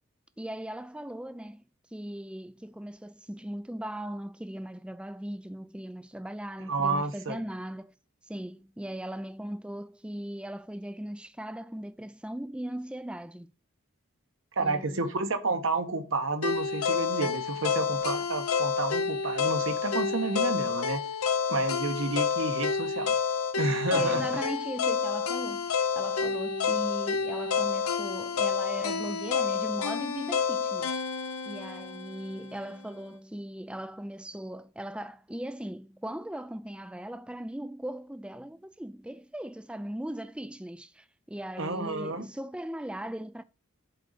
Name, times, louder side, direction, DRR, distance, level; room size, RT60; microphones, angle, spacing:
voice 1, 0.4-1.6 1.9-7.9 8.3-13.5 14.6-15.2 23.9-31.1 31.5-43.4, right 1 dB, 5° right, 0.4 m, -38 dB
voice 2, 6.7-7.4 14.6-21.1 21.5-23.2 23.5-24.3 41.6-42.3, right 3 dB, 60° right, 1.2 m, -30 dB
sound 1, 16.4-32.5, left 5 dB, 80° left, 0.9 m, -29 dB
7.8 x 4.0 x 6.6 m
head